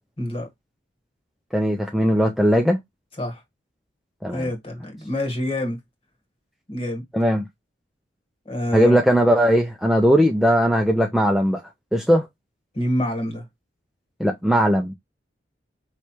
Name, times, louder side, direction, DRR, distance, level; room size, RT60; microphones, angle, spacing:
voice 1, 0.2-0.5 3.2-3.4 4.3-5.8 6.7-7.0 8.4-9.0 12.7-13.4, left 1 dB, 30° left, 1.6 m, -26 dB
voice 2, 1.5-2.8 4.2-4.4 7.1-7.4 8.7-11.6 11.9-12.3 14.2-14.9, equal, ahead, 0.4 m, -18 dB
4.8 x 3.2 x 2.9 m
head